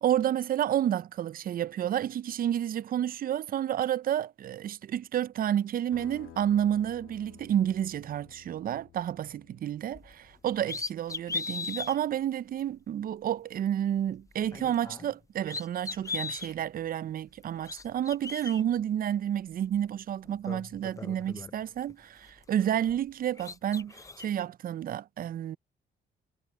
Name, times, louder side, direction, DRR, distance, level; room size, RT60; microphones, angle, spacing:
voice 1, 0.0-25.6, right 10 dB, 45° right, 0.4 m, -30 dB
sound 1, 5.9-11.1, left 13 dB, 85° left, 2.3 m, -54 dB
sound 2, 9.9-10.1 10.6-12.0 12.6-12.7 14.4-15.2 15.4-16.5 17.4-18.6 19.7-19.8 20.2-21.9 22.3-23.1 23.4-24.3, left 4 dB, 15° left, 0.5 m, -38 dB
cardioid pair, 90°, 20 cm